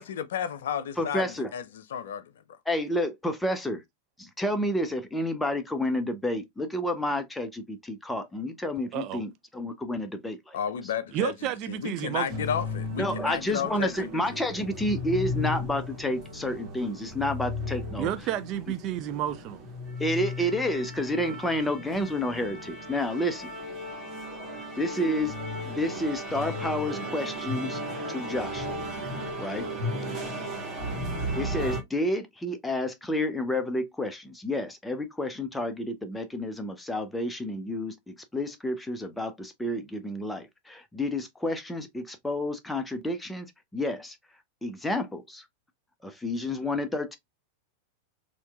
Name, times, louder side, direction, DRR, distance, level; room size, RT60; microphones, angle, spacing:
voice 1, 0.0-2.3 10.5-11.3 11.7-14.1, left 8 dB, 60° left, 0.5 m, -32 dB
voice 2, 1.0-1.5 2.7-3.8 4.2-10.6 13.0-18.1 20.0-23.5 24.8-25.4 25.6-27.8 28.1-28.8 29.4-29.7 31.4-43.5 43.7-44.2 44.6-45.4 46.0-47.2, left 1 dB, 5° left, 0.7 m, -30 dB
voice 3, 11.1-12.3 18.0-19.7, right 12 dB, 40° right, 0.4 m, -31 dB
sound 1, 12.3-31.8, left 1 dB, 25° right, 1.8 m, -35 dB
4.4 x 2.8 x 2.3 m
figure-of-eight pair, 90°, 0 cm